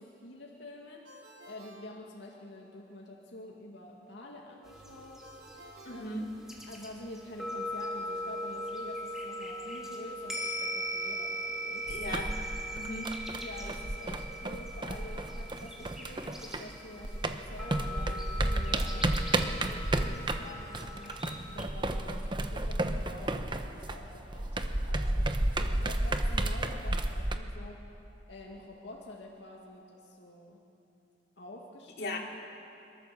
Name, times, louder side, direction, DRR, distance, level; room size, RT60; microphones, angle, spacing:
voice 1, 0.0-5.3 5.9-6.1 6.7-11.9 13.4-21.1 21.5-27.8 28.3-30.6 31.4-32.2, left 1 dB, 85° left, -2 dB, 2.4 m, -48 dB
Ringtone, 1.0-2.7 5.2-6.9, right 1 dB, 65° right, 4.5 m, -54 dB
sound 1, 4.6-21.6, equal, 5° right, 2.7 m, -40 dB
voice 2, 5.8-6.3 11.9-12.3 12.7-13.1 32.0-32.2, left 1 dB, 60° left, -1 dB, 3.0 m, -37 dB
sound 2, 11.9-16.8 17.0-27.4, right 1 dB, 25° right, 0.9 m, -32 dB
30.0 x 13.5 x 7.0 m, 2.7 s
head